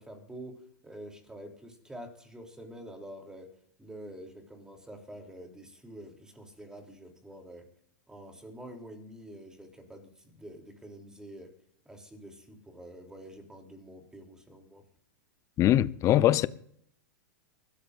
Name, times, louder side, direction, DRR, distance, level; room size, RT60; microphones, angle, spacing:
voice 1, 0.0-3.5 3.8-7.7 8.1-11.5 11.8-14.8, right 1 dB, 5° right, 3.2 m, -47 dB
voice 2, 15.6-16.5, left 13 dB, 30° left, 0.7 m, -22 dB
25.0 x 13.0 x 2.6 m
hypercardioid pair, 135°, 10 cm